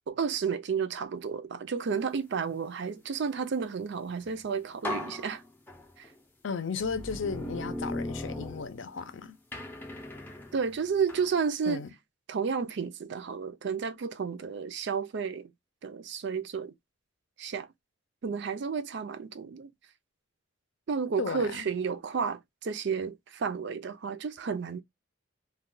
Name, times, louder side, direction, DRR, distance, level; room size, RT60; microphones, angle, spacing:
voice 1, 0.1-5.4 6.0-6.1 10.5-11.8 12.3-15.5 15.8-16.7 17.4-17.7 18.2-19.7 20.9-24.8, right 6 dB, 60° right, 0.4 m, -32 dB
sound 1, 4.3-4.4 4.8-6.1 6.8-9.1 9.5-11.3, left 1 dB, 10° left, 0.5 m, -38 dB
voice 2, 6.4-9.4 11.7-11.9 21.2-21.7, left 5 dB, 70° left, 0.5 m, -35 dB
2.3 x 2.2 x 3.7 m
head